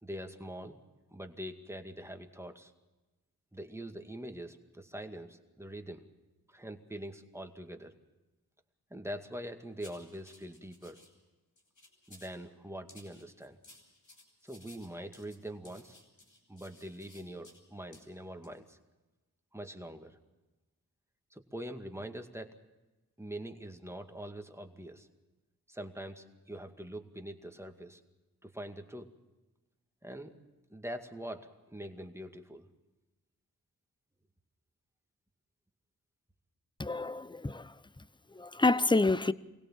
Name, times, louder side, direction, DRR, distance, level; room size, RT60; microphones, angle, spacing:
voice 1, 0.0-0.8 1.1-2.7 3.5-6.0 6.5-7.9 8.9-11.0 12.1-13.6 14.4-16.0 16.5-18.8 19.5-20.2 21.3-22.6 23.2-25.1 25.7-28.0 28.4-29.1 30.0-30.4 30.7-32.7, right 1 dB, 5° right, 2.2 m, -44 dB
sound 1, 9.8-11.1 11.6-12.4 12.9-17.6 17.9-18.1 18.4-18.6, left 2 dB, 55° left, 7.0 m, -58 dB
voice 2, 36.8-37.7 38.4-39.3, left 3 dB, 10° left, 0.8 m, -28 dB
24.5 x 17.0 x 7.5 m
cardioid pair, 45°, 37 cm